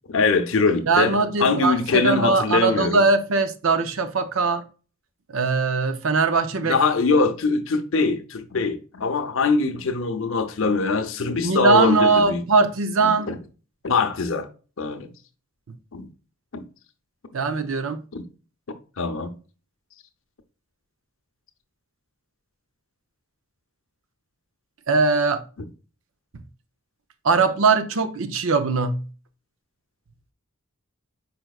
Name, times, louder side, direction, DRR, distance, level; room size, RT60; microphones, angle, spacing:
voice 1, 0.1-3.0 6.6-12.4 13.0-13.4 13.8-14.5 14.8-15.1 15.9-16.1 16.5-16.6 18.1-18.2 19.0-19.3, left 4 dB, 65° left, 0.7 m, -22 dB
voice 2, 0.9-4.6 5.3-6.8 11.4-13.3 17.3-18.0 24.9-25.4 27.2-29.1, right 4 dB, 65° right, 0.6 m, -20 dB
5.0 x 4.5 x 2.3 m
head